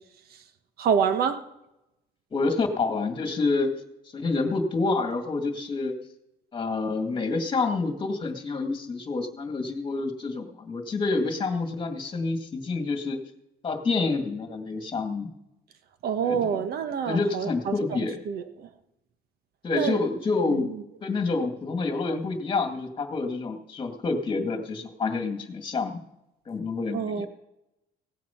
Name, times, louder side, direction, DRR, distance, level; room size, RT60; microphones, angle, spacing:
voice 1, 0.8-1.4 16.0-18.7 19.7-20.0 20.5-20.8 26.9-27.3, right 7 dB, 65° right, 9 dB, 1.3 m, -27 dB
voice 2, 2.3-3.8 4.1-6.0 6.5-13.2 13.6-15.3 16.2-16.6 17.1-18.2 19.6-20.7 21.0-26.0 26.5-27.3, left 3 dB, 30° left, 5 dB, 2.0 m, -28 dB
17.0 x 7.5 x 5.8 m, 0.88 s
cardioid pair, 110°, 17 cm